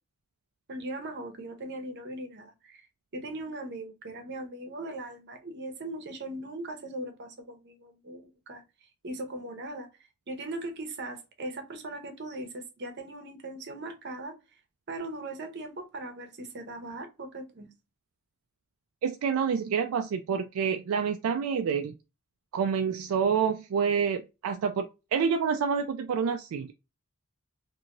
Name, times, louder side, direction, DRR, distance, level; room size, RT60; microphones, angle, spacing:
voice 1, 0.7-2.8 3.1-8.6 9.0-9.9 10.3-14.3 14.9-17.7, right 2 dB, 50° right, 0.7 m, -39 dB
voice 2, 19.0-21.9 22.5-26.7, right 6 dB, 70° right, 0.3 m, -28 dB
2.9 x 2.6 x 2.5 m
head